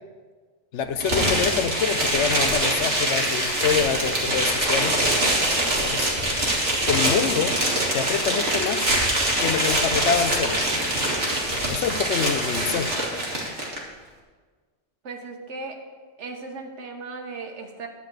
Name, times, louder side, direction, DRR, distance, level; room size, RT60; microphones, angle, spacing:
voice 1, 0.7-5.0 5.8-6.1 6.9-7.6 7.9-8.9 9.4-10.6 11.7-12.9, left 7 dB, 80° left, 10 dB, 1.0 m, -26 dB
sound 1, 1.0-13.8, right 1 dB, 60° right, 2.0 m, -24 dB
voice 2, 15.0-15.7 16.2-17.9, right 3 dB, 75° right, 3 dB, 1.4 m, -36 dB
11.0 x 4.3 x 7.8 m, 1.5 s
omnidirectional pair, 1.2 m